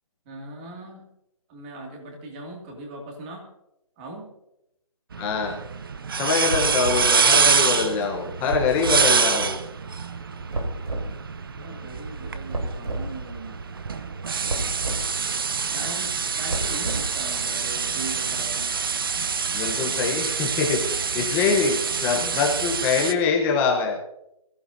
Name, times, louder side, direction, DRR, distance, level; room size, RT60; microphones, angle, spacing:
voice 1, 0.3-1.0 1.5-3.4 4.0-4.3 6.9-7.2 11.5-13.6 15.7-18.7 22.1-22.4, right 2 dB, 15° right, 1 dB, 2.4 m, -39 dB
sound 1, 5.1-23.1, right 5 dB, 40° right, 0.8 m, -26 dB
voice 2, 5.2-5.6 6.1-9.6 19.5-24.0, left 5 dB, 10° left, 1 dB, 1.0 m, -24 dB
sound 2, 6.5-7.1 8.5-9.1 10.5-11.1 12.5-13.1 14.5-15.1 16.5-17.2, right 2 dB, 80° right, 3.8 m, -29 dB
23.5 x 15.0 x 2.8 m, 0.83 s
hypercardioid pair, 165°, 19 cm